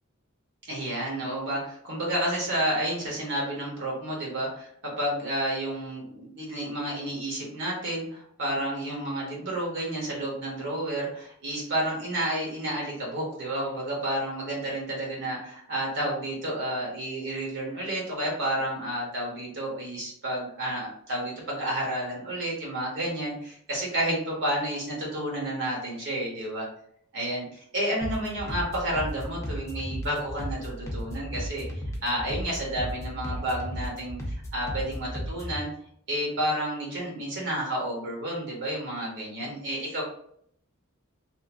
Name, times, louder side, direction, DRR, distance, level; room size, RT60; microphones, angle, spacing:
voice 1, 0.7-26.7 27.1-27.5 27.7-31.6 32.0-35.7 36.1-40.0, right 1 dB, 60° right, -2 dB, 1.0 m, -30 dB
sound 1, 28.0-35.6, equal, 15° left, 0.6 m, -35 dB
3.0 x 2.5 x 2.5 m, 0.66 s
head